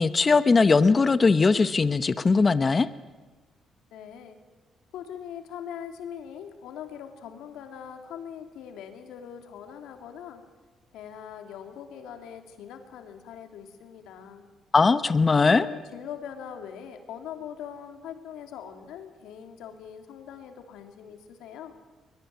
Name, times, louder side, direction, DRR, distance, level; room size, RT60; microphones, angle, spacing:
voice 1, 0.0-2.9 14.7-15.6, left 4 dB, 30° left, 13 dB, 0.9 m, -20 dB
voice 2, 3.9-4.4 4.9-10.4 10.9-14.5 15.5-21.7, left 8 dB, 90° left, 6 dB, 2.8 m, -41 dB
22.0 x 21.5 x 9.5 m, 1.3 s
cardioid pair, 90°, 0 cm